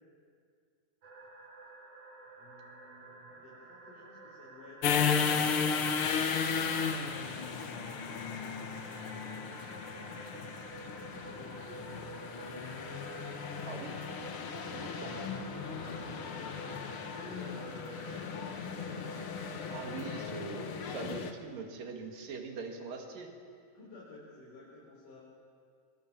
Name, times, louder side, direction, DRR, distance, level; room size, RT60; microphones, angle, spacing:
sound 1, 1.0-20.3, right 3 dB, 50° right, 3.3 m, -50 dB
voice 1, 2.4-6.0 7.0-7.7 8.2-10.0 10.9-12.1 15.3-18.3 23.7-25.2, left 2 dB, 75° left, -6 dB, 6.1 m, -53 dB
sound 2, 4.8-21.3, left 6 dB, 55° left, 1.7 m, -35 dB
voice 2, 13.7-14.0 14.7-15.4 19.7-23.3, right 5 dB, 80° right, 3 dB, 3.9 m, -42 dB
25.5 x 22.0 x 7.5 m, 2.2 s
omnidirectional pair, 3.8 m